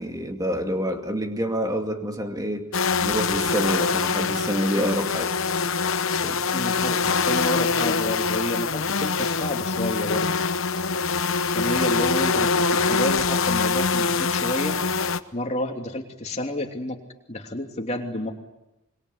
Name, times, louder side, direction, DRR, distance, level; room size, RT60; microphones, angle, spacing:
voice 1, 0.0-2.7 3.0-5.4 6.2-6.4 6.9-7.1, equal, 15° right, 4 dB, 2.4 m, -27 dB
sound 1, 2.7-15.2, left 4 dB, 60° left, 1.0 m, -24 dB
voice 2, 6.5-10.3 11.5-14.8 15.3-17.0 17.3-18.3, left 1 dB, 30° left, 2 dB, 3.0 m, -30 dB
25.5 x 23.0 x 9.9 m, 0.95 s
head